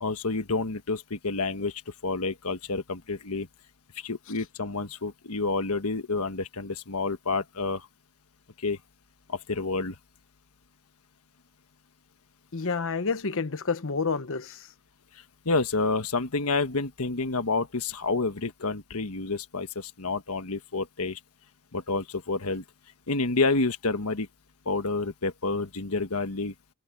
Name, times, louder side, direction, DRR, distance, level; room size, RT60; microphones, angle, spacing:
voice 1, 0.0-3.5 3.9-7.9 8.6-8.8 9.3-10.0 15.4-21.2 21.7-22.6 23.1-24.3 24.6-26.7, left 3 dB, 85° left, 1.4 m, -29 dB
voice 2, 12.5-14.7, left 4 dB, 65° left, 1.1 m, -29 dB
head